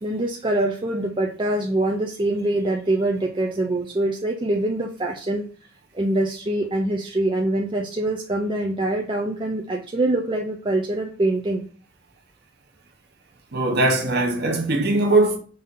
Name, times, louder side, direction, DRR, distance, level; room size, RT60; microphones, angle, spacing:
voice 1, 0.0-5.5 5.9-11.7, right 1 dB, 25° right, 0.4 m, -24 dB
voice 2, 13.5-15.4, right 2 dB, 50° right, 1.0 m, -20 dB
5.3 x 2.7 x 3.6 m
head